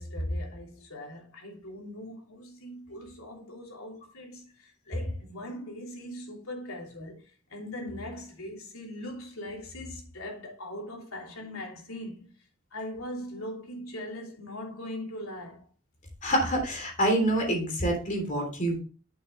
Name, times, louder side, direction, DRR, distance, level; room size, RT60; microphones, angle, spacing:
voice 1, 0.0-7.2 7.5-12.3 12.7-15.7, left 1 dB, 85° left, 3.2 m, -40 dB
voice 2, 16.2-18.8, right 1 dB, 40° left, 3.3 m, -26 dB
8.6 x 7.3 x 3.4 m
head